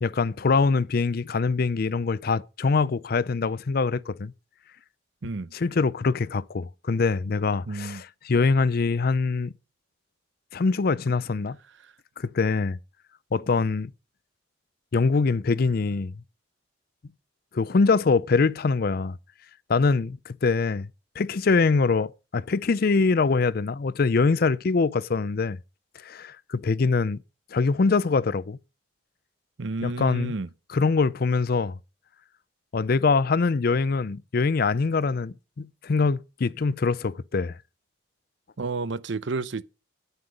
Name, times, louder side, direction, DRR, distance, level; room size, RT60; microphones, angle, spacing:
voice 1, 0.0-4.3 5.5-9.5 10.5-11.6 12.2-12.8 13.3-13.9 14.9-16.1 17.5-19.2 19.7-20.9 21.2-25.6 26.0-27.2 27.5-28.6 29.8-30.3 30.7-31.8 32.7-37.6, left 4 dB, 50° left, 0.5 m, -24 dB
voice 2, 5.2-5.5 7.7-8.0 29.6-30.5 38.6-39.6, right 3 dB, 70° right, 0.7 m, -31 dB
9.6 x 9.6 x 5.1 m
head